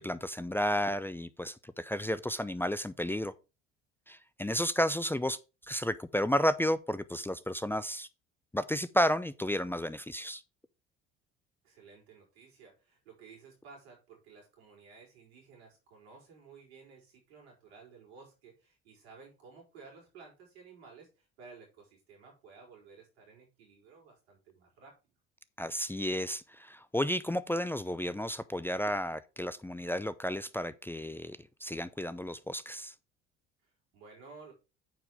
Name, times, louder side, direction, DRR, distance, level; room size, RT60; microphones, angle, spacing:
voice 1, 0.0-3.3 4.1-5.4 5.7-8.1 8.5-10.4 25.6-32.9, equal, 5° left, 0.6 m, -32 dB
voice 2, 11.6-24.9 33.6-34.5, right 4 dB, 85° right, 5.2 m, -55 dB
9.2 x 4.8 x 4.8 m
hypercardioid pair, 60°, 31 cm